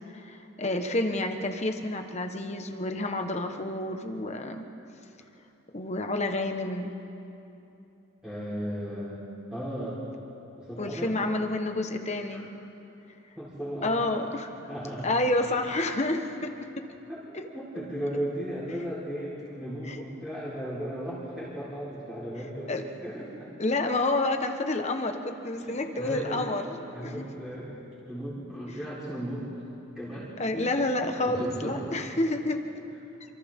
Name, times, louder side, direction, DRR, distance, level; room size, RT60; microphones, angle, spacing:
voice 1, 0.1-4.7 5.7-6.9 10.8-12.5 13.8-14.5 15.0-16.5 17.3-17.4 19.9-20.0 22.7-22.8 23.6-27.2 30.4-32.6, left 2 dB, 35° left, 5 dB, 1.3 m, -29 dB
voice 2, 8.2-9.2 9.5-10.0 10.5-11.2 12.3-12.4 13.4-14.3 14.7-15.2 17.1-17.2 17.5-23.5 25.5-26.4 26.9-29.5 29.9-32.0, equal, 5° right, -11 dB, 4.2 m, -36 dB
28.5 x 26.0 x 3.7 m, 2.9 s
head